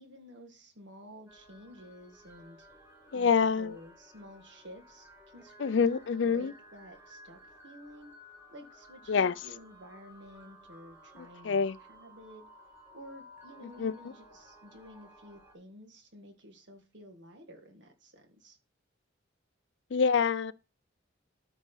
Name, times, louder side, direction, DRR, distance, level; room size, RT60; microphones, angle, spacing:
voice 1, 0.0-2.7 3.1-8.1 8.5-12.4 12.9-18.6, equal, 65° right, 2.0 m, -51 dB
sound 1, 1.3-15.6, equal, 15° right, 1.6 m, -56 dB
voice 2, 3.1-3.8 5.6-6.5 9.1-9.3 11.4-11.8 13.8-13.9 19.9-20.5, left 5 dB, 65° left, 0.4 m, -26 dB
13.0 x 5.0 x 4.0 m
head